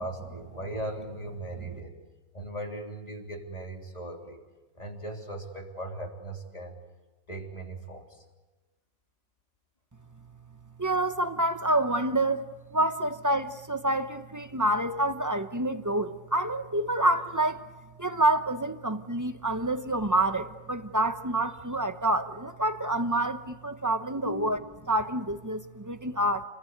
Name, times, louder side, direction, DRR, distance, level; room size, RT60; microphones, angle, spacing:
voice 1, 0.0-2.0 2.3-4.4 4.8-6.8 7.3-8.2 24.1-24.5, right 1 dB, 20° left, 1 dB, 3.5 m, -38 dB
voice 2, 10.8-12.4 12.7-17.7 18.0-24.6 24.9-26.4, right 1 dB, 25° right, 8 dB, 0.4 m, -27 dB
29.0 x 21.0 x 9.4 m, 1.2 s
omnidirectional pair, 2.1 m